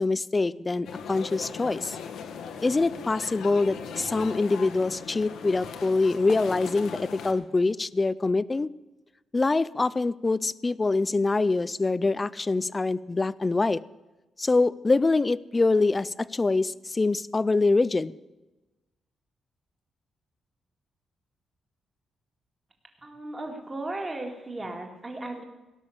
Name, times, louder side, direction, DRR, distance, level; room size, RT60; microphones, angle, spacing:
voice 1, 0.0-2.0 2.6-8.7 9.3-13.8 14.4-18.1, left 3 dB, 20° left, 19 dB, 0.4 m, -25 dB
sound 1, 0.8-7.3, left 6 dB, 75° left, 1.4 m, -39 dB
voice 2, 23.0-25.4, right 2 dB, 15° right, 3 dB, 2.0 m, -36 dB
17.5 x 6.4 x 8.5 m, 1.1 s
wide cardioid pair, 160°, 0 cm